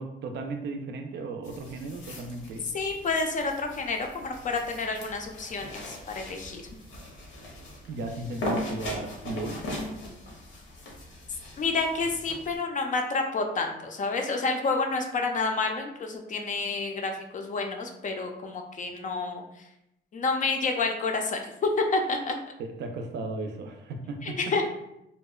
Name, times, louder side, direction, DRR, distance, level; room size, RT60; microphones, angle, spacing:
voice 1, 0.0-2.7 7.9-9.6 22.6-24.5, right 3 dB, 60° right, 4 dB, 0.4 m, -35 dB
sound 1, 1.4-12.6, left 1 dB, 75° left, 0.7 m, -39 dB
voice 2, 2.7-6.6 11.6-19.4 20.1-22.3 24.2-24.7, left 3 dB, 40° left, 4 dB, 0.4 m, -29 dB
2.8 x 2.0 x 2.3 m, 0.83 s
cardioid pair, 90°, 20 cm